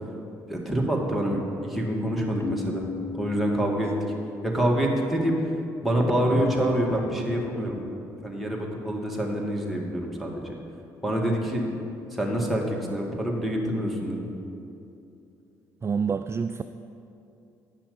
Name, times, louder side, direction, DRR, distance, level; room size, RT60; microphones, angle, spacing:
voice 1, 0.5-2.9 3.1-3.9 4.4-5.4 5.8-7.9 8.2-10.5 11.0-11.6 12.1-14.3, right 1 dB, ahead, -2 dB, 2.1 m, -26 dB
Keyboard (musical), 2.4-5.0, left 5 dB, 25° left, 0.9 m, -38 dB
voice 2, 15.8-16.6, right 6 dB, 30° right, 10 dB, 0.3 m, -27 dB
9.8 x 5.7 x 7.1 m, 2.7 s
hypercardioid pair, 50°, 9 cm